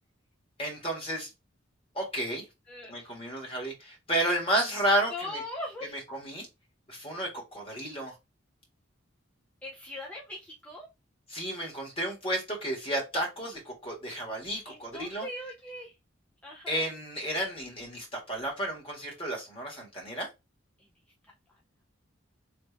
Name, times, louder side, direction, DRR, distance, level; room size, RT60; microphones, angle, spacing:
voice 1, 0.6-1.3 1.9-2.4 2.9-5.4 6.1-6.5 6.9-8.1 11.3-15.3 16.7-20.3, right 1 dB, 30° left, 1.6 m, -32 dB
voice 2, 2.7-3.1 5.1-5.9 9.6-10.9 14.6-16.0 16.4-16.9 20.8-20.9 21.2-21.3, left 1 dB, 5° left, 0.5 m, -40 dB
3.3 x 2.5 x 3.2 m
head